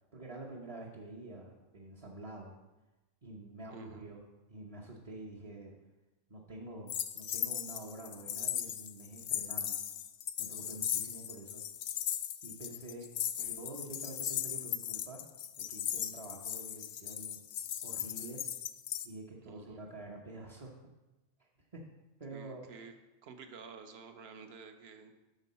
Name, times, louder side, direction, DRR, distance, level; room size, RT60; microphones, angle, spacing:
voice 1, 0.1-2.6 3.2-5.7 6.3-9.9 10.4-11.7 12.4-13.1 13.4-15.2 15.6-17.4 17.8-18.4 19.0-20.7 21.4-21.8 22.2-22.8, right 2 dB, 30° right, -3 dB, 0.8 m, -47 dB
voice 2, 3.7-4.1 13.4-13.6 19.4-19.8 22.3-22.9 23.2-25.1, right 5 dB, 55° right, 7 dB, 1.0 m, -51 dB
sound 1, 6.9-19.1, left 10 dB, 70° left, 0.8 m, -38 dB
9.1 x 6.4 x 4.2 m, 1.1 s
omnidirectional pair, 1.4 m